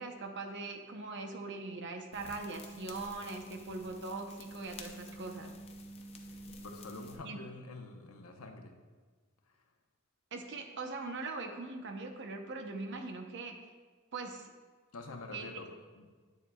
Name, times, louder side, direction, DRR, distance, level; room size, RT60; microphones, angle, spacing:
voice 1, 0.0-5.5 7.2-7.4 10.3-13.6 14.1-14.5 15.3-15.6, right 3 dB, 55° right, 5 dB, 0.7 m, -41 dB
sound 1, 2.1-7.2, equal, 30° left, 0.6 m, -48 dB
voice 2, 6.5-8.7 14.9-15.7 16.0-16.1, left 3 dB, 85° left, 3 dB, 0.9 m, -46 dB
9.3 x 7.1 x 2.3 m, 1.5 s
head